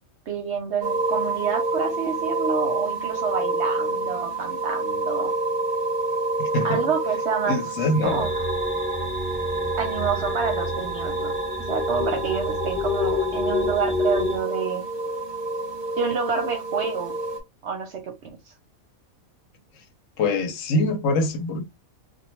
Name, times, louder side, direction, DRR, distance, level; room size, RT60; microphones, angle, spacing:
voice 1, 0.3-5.3 6.6-7.6 8.0-8.3 9.8-11.3 11.7-14.8 16.0-17.1 17.6-18.3, right 6 dB, 60° right, 0.8 m, -28 dB
sound 1, 0.8-17.4, right 2 dB, 40° right, 0.3 m, -28 dB
voice 2, 6.4-6.8 7.5-8.3 20.2-21.6, left 2 dB, 70° left, 1.0 m, -24 dB
sound 2, 8.0-14.4, left 3 dB, 15° left, 0.6 m, -29 dB
2.3 x 2.2 x 3.0 m
omnidirectional pair, 1.5 m